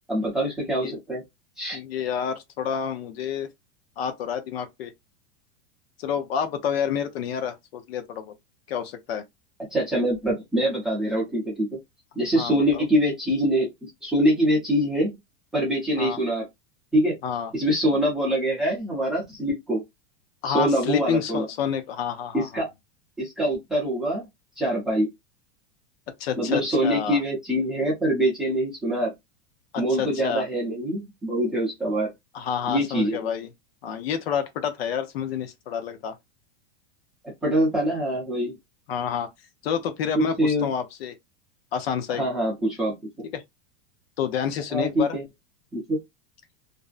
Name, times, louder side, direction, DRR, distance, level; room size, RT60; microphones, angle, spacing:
voice 1, 0.1-1.2 1.6-1.8 9.7-11.8 12.2-15.1 15.5-16.4 16.9-17.2 17.5-19.8 20.5-21.5 22.3-22.7 23.2-24.3 24.6-25.1 26.4-29.1 29.8-32.1 32.7-33.3 37.4-38.5 40.1-40.7 42.1-43.3 44.7-45.2 45.7-46.0, equal, ahead, 0.7 m, -24 dB
voice 2, 1.7-3.5 4.0-4.9 6.0-8.3 8.7-9.2 12.4-12.8 16.0-16.2 17.2-17.5 20.4-22.6 26.2-27.2 29.7-30.4 32.3-33.5 33.8-36.2 38.9-39.3 39.6-41.1 41.7-42.2 43.3-43.4 44.2-45.2, left 7 dB, 65° left, 0.6 m, -29 dB
2.5 x 2.0 x 2.4 m
supercardioid pair, 175°, 33 cm